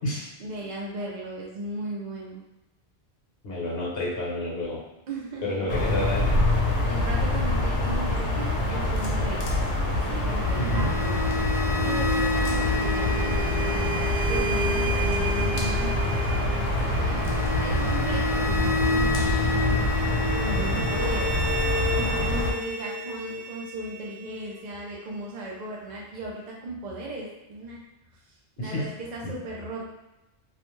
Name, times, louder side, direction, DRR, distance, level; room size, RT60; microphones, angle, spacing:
voice 1, 0.4-2.4 5.1-5.7 6.9-9.4 10.1-11.2 11.8-13.9 14.3-16.2 16.7-17.3 17.5-19.9 20.4-21.4 21.9-27.8 28.6-29.8, right 2 dB, 55° right, -4 dB, 0.5 m, -36 dB
voice 2, 3.4-4.8 5.4-6.3 10.6-10.9 20.5-20.8 28.6-28.9 29.2-29.3, left 1 dB, 65° left, -4 dB, 1.0 m, -29 dB
sound 1, 5.7-22.5, left 1 dB, 90° left, 0.9 m, -25 dB
sound 2, 10.2-25.2, left 1 dB, 10° right, 0.7 m, -30 dB
2.5 x 2.1 x 3.0 m, 0.99 s
omnidirectional pair, 1.1 m